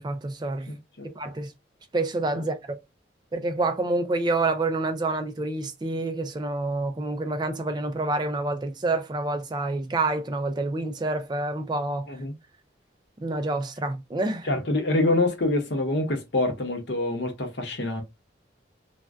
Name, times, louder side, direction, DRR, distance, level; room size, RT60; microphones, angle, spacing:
voice 1, 0.0-0.7 1.2-1.5 1.9-2.8 3.3-12.1 13.2-14.5, right 2 dB, 25° right, 0.4 m, -28 dB
voice 2, 0.7-1.1 12.1-12.3 14.4-18.0, left 2 dB, 65° left, 0.8 m, -26 dB
2.5 x 2.2 x 3.4 m
head